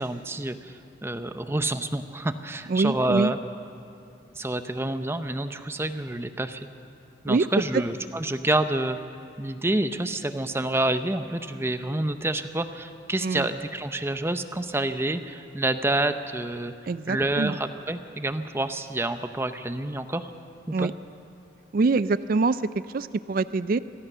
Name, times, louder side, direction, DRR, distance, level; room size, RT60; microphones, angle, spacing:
voice 1, 0.0-3.4 4.3-6.7 7.2-9.0 9.4-16.7 17.1-20.3 20.7-20.9, right 1 dB, 15° right, 9 dB, 0.7 m, -28 dB
voice 2, 2.7-3.3 7.3-7.4 13.2-13.5 16.9-17.6 20.7-20.9 21.7-22.6 22.9-23.8, right 3 dB, 50° right, 15 dB, 0.4 m, -24 dB
24.5 x 17.5 x 6.8 m, 2.5 s
head